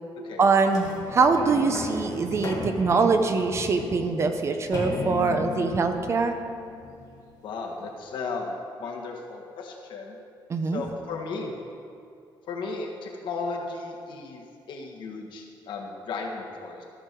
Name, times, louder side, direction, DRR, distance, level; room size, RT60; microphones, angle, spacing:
voice 1, 0.4-6.4 10.5-10.8, right 4 dB, 30° right, 7 dB, 0.6 m, -23 dB
sound 1, 0.7-7.5 8.1-8.2, left 3 dB, 45° left, 1.8 m, -36 dB
voice 2, 7.4-10.2 10.7-11.5 12.5-16.8, left 4 dB, 70° left, 0 dB, 1.5 m, -35 dB
14.0 x 6.5 x 4.5 m, 2.6 s
cardioid pair, 160°, 9 cm